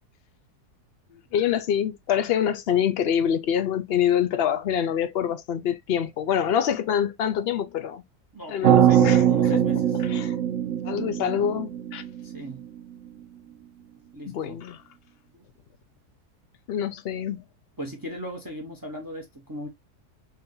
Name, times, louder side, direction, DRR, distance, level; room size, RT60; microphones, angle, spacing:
voice 1, 1.3-8.0 8.5-9.2 9.5-9.6 10.0-10.4 10.8-12.0 14.3-14.8 16.7-17.4, left 9 dB, 65° left, 0.6 m, -25 dB
voice 2, 8.3-10.0 12.2-12.7 14.1-14.6 15.3-15.4 17.8-19.7, equal, 15° right, 1.2 m, -37 dB
sound 1, 8.6-12.8, right 10 dB, 70° right, 0.7 m, -21 dB
4.3 x 2.7 x 3.8 m
omnidirectional pair, 1.7 m